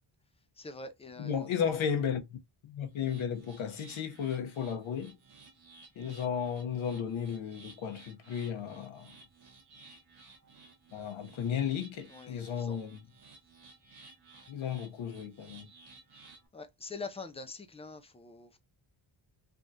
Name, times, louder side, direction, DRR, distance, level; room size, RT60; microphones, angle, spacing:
voice 1, 0.6-1.5 12.1-12.8 16.5-18.6, left 3 dB, 15° left, 0.3 m, -44 dB
voice 2, 1.2-5.2 6.0-9.1 10.9-13.0 14.5-15.7, left 8 dB, 75° left, 0.8 m, -34 dB
sound 1, 2.9-16.5, right 4 dB, 50° right, 1.1 m, -56 dB
3.4 x 2.3 x 2.6 m
wide cardioid pair, 145°, 48 cm